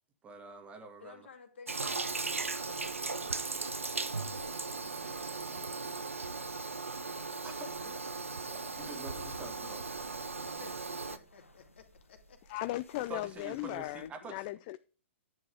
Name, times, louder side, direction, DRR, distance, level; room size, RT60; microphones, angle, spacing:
voice 1, 0.2-1.3 7.4-9.9 13.1-14.4, right 3 dB, 15° right, 7 dB, 1.9 m, -47 dB
voice 2, 1.0-2.1 2.6-3.1 10.3-12.6, left 6 dB, 60° left, 5 dB, 2.4 m, -55 dB
Toilet flush, 1.7-11.2, right 3 dB, 80° right, 0.9 m, -37 dB
sound 1, 3.1-10.2, right 8 dB, 45° right, 2.2 m, -58 dB
sound 2, 8.7-14.1, left 1 dB, 85° left, 1.2 m, -56 dB
voice 3, 12.5-14.8, left 17 dB, 35° left, 15 dB, 0.4 m, -37 dB
10.5 x 8.3 x 3.5 m, 0.38 s
figure-of-eight pair, 110°, 7 cm